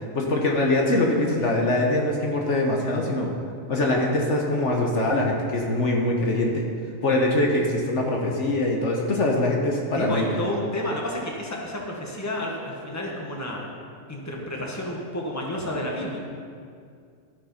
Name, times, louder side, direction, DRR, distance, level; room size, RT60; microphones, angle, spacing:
voice 1, 0.1-3.3 3.7-6.6 7.0-10.3, left 1 dB, 60° left, 0 dB, 1.3 m, -23 dB
voice 2, 9.9-13.6 14.1-16.2, left 1 dB, 10° left, -1 dB, 1.4 m, -30 dB
13.0 x 6.6 x 5.6 m, 2.3 s
omnidirectional pair, 1.4 m